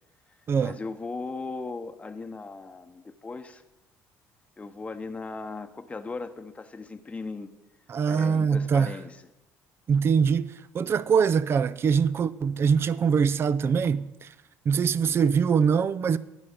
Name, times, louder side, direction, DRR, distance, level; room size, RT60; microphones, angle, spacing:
voice 1, 0.6-3.6 4.6-7.5 8.1-9.2, left 3 dB, 20° left, 0.9 m, -37 dB
voice 2, 7.9-8.9 9.9-14.3 14.7-16.2, right 6 dB, 40° right, 0.5 m, -23 dB
11.0 x 9.8 x 6.6 m
supercardioid pair, 90°, 6 cm